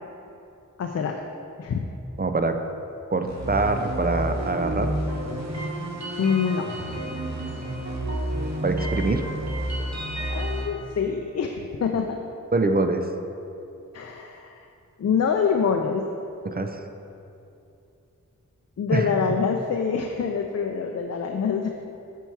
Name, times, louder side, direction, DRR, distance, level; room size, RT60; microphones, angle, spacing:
voice 1, 0.8-1.2 1.6-1.9 6.2-6.7 10.3-12.2 13.9-14.7 15.0-16.1 18.8-21.7, left 6 dB, 50° left, 3 dB, 0.5 m, -25 dB
voice 2, 2.2-2.6 3.1-4.9 8.6-9.3 12.5-13.1 16.4-16.8 18.9-19.1, right 3 dB, 30° right, 6 dB, 0.5 m, -24 dB
sound 1, 3.2-10.6, right 1 dB, 55° right, 1.5 m, -30 dB
6.9 x 4.6 x 4.6 m, 2.7 s
cardioid pair, 45°, 32 cm